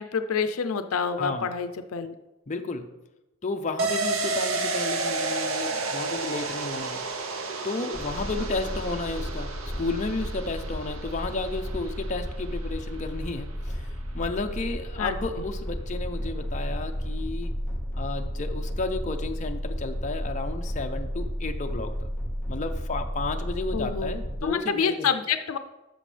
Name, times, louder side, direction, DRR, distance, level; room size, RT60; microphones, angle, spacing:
voice 1, 0.0-2.1 15.0-15.2 23.7-25.6, left 6 dB, 75° left, 9 dB, 0.5 m, -28 dB
voice 2, 1.2-1.5 2.5-2.9 3.4-7.0 7.6-17.5 18.0-21.9 22.5-25.1, left 3 dB, 35° left, 4 dB, 0.6 m, -32 dB
sound 1, 3.8-13.2 13.5-13.6, right 3 dB, 65° right, 0.8 m, -32 dB
sound 2, 7.9-24.5, equal, 10° left, 0.9 m, -33 dB
13.0 x 6.1 x 3.3 m, 1.0 s
head